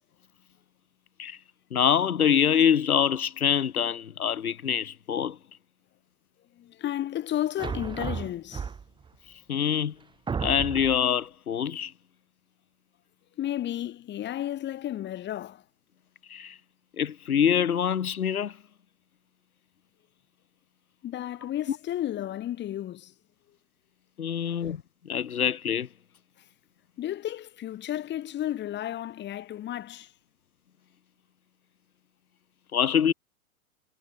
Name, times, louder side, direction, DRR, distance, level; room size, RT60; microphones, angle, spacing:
voice 1, 1.7-5.4 9.5-9.9 10.4-11.9 16.3-16.5 17.0-18.5 24.2-24.8 25.0-25.9 32.7-33.1, left 8 dB, 90° left, 1.0 m, -25 dB
voice 2, 6.5-8.7 13.4-15.6 21.0-23.1 24.4-24.7 27.0-30.1, left 12 dB, 25° left, 4.2 m, -33 dB
sound 1, 7.6-9.1 9.7-9.8 10.3-11.1, right 6 dB, 10° right, 1.6 m, -33 dB
hypercardioid pair, 120°, 42 cm